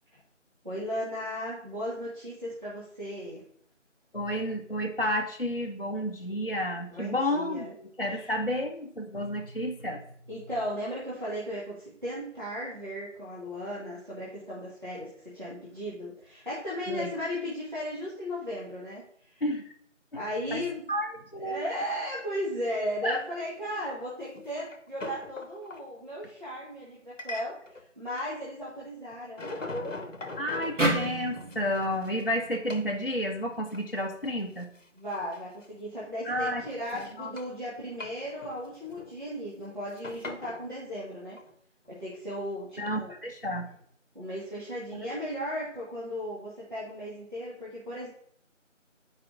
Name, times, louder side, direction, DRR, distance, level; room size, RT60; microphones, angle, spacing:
voice 1, 0.6-3.4 6.9-7.7 8.1-8.3 9.2-9.3 10.3-19.4 20.1-20.9 21.3-29.9 34.9-41.4 41.9-43.1 44.1-48.1, equal, 40° right, -8 dB, 1.3 m, -36 dB
voice 2, 4.1-10.0 16.9-17.1 19.4-19.6 20.5-20.6 20.9-21.6 23.0-23.2 30.4-34.7 36.2-36.6 36.9-37.3 42.8-43.7, equal, 50° left, 1 dB, 0.5 m, -31 dB
sound 1, 24.3-25.8 27.2-27.8 28.1-28.9 29.1-32.3 32.7-32.9 33.4-34.0 34.2-34.3 34.6-35.7 36.1-37.6 37.9-39.1 39.4-40.7 41.4-41.5 42.9-43.0, left 2 dB, 75° left, 0.8 m, -42 dB
sound 2, 30.8-34.0, right 1 dB, 75° right, 1.5 m, -32 dB
9.6 x 4.8 x 2.4 m, 0.64 s
figure-of-eight pair, 180°, 38 cm